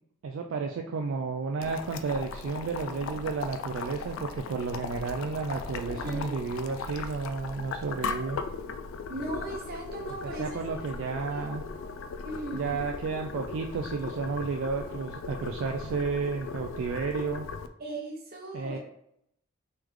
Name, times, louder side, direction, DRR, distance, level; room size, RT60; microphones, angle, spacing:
voice 1, 0.2-8.4 10.2-11.6 12.5-17.5 18.5-18.8, right 4 dB, 70° right, 3 dB, 0.3 m, -32 dB
Boiling, 1.6-17.7, left 5 dB, 75° left, 0.3 m, -38 dB
voice 2, 5.9-6.3 9.1-10.9 11.3-11.5 12.2-12.9 17.8-18.8, right 2 dB, 45° right, 0 dB, 0.9 m, -38 dB
3.2 x 3.1 x 3.6 m, 0.73 s
head